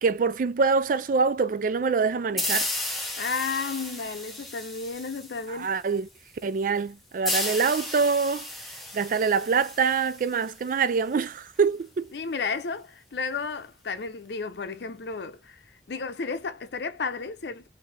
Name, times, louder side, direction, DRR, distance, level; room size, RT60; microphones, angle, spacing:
voice 1, 0.0-2.7 5.5-6.1 6.4-8.5 8.9-12.1, right 5 dB, 50° right, 0.3 m, -25 dB
sound 1, 2.4-5.8 7.2-10.7, left 1 dB, ahead, 0.9 m, -33 dB
voice 2, 3.2-5.7 12.1-15.6 15.9-17.6, left 4 dB, 70° left, 0.6 m, -32 dB
3.3 x 2.7 x 4.6 m
head